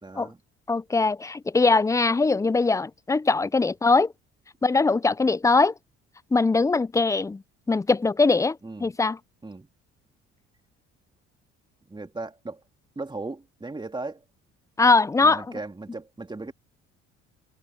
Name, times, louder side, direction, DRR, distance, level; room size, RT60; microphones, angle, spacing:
voice 1, 0.0-0.4 8.6-8.9 9.4-9.7 11.9-12.6 12.9-14.2 15.2-16.5, right 3 dB, 15° right, 2.8 m, -37 dB
voice 2, 0.7-4.1 4.6-5.7 6.3-7.4 7.7-9.2 14.8-15.4, left 3 dB, 10° left, 0.4 m, -21 dB
supercardioid pair, 80°, 29 cm